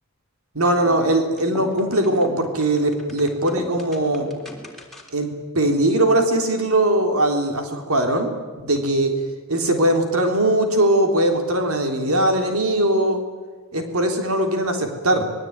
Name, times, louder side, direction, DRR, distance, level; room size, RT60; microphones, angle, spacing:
voice 1, 0.5-4.3 5.1-8.3 8.6-9.1 9.5-13.2 13.7-15.3, right 1 dB, 85° right, 4 dB, 3.6 m, -20 dB
sound 1, 0.7-5.3, equal, ahead, 3.6 m, -38 dB
26.0 x 21.5 x 9.5 m, 1.4 s
head